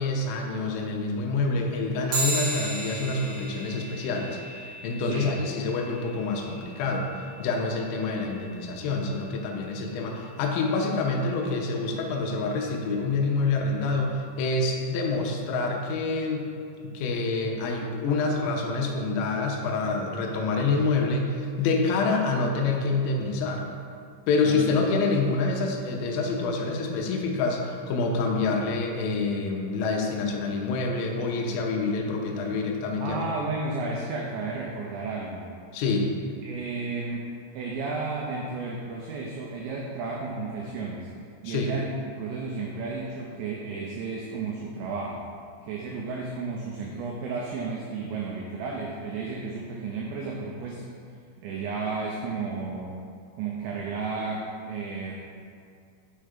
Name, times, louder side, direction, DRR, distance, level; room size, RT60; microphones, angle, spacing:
voice 1, 0.0-16.5 16.8-23.7 24.3-33.2 35.7-36.1 41.4-41.7, left 3 dB, 85° left, 1 dB, 3.3 m, -27 dB
sound 1, 2.1-11.9, right 1 dB, 70° right, 2.6 m, -37 dB
voice 2, 5.0-5.3 24.5-24.7 33.0-35.5 36.4-37.2 37.5-41.1 41.4-45.2 45.6-50.9 51.4-52.9 53.4-55.2, right 4 dB, 90° right, -2 dB, 2.5 m, -33 dB
6.5 x 5.8 x 5.0 m, 2.3 s
omnidirectional pair, 5.9 m